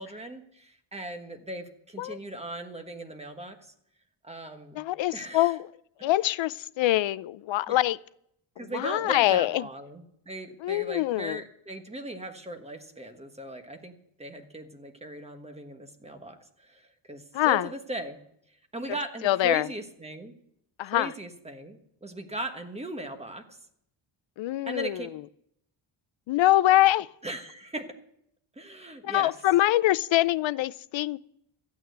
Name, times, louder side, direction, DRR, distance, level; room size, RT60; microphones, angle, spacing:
voice 1, 0.0-3.7 4.2-4.8 5.1-5.6 6.0-6.1 7.7-7.8 8.6-13.9 14.2-18.2 18.5-20.3 20.8-23.6 24.7-25.1 27.2-27.9 28.5-29.3, right 1 dB, 15° right, 1.3 m, -38 dB
voice 2, 4.8-5.7 6.0-8.0 8.7-9.7 10.6-11.4 17.3-17.7 19.2-19.7 20.8-21.1 24.4-25.0 26.3-27.1 29.0-31.2, left 15 dB, 65° left, 0.6 m, -24 dB
13.0 x 9.0 x 8.0 m
cardioid pair, 135°, 49 cm